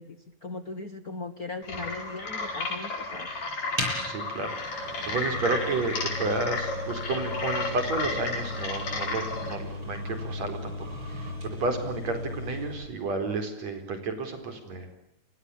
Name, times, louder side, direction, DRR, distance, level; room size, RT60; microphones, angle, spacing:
voice 1, 0.0-3.3, left 3 dB, 40° left, 10 dB, 1.5 m, -39 dB
sound 1, 1.6-9.6, left 3 dB, 65° left, 6.2 m, -33 dB
sound 2, 3.8-12.9, left 1 dB, 40° right, 8.9 m, -37 dB
voice 2, 4.1-15.0, right 3 dB, 65° right, 7 dB, 5.4 m, -32 dB
28.5 x 24.5 x 8.6 m, 0.71 s
omnidirectional pair, 3.3 m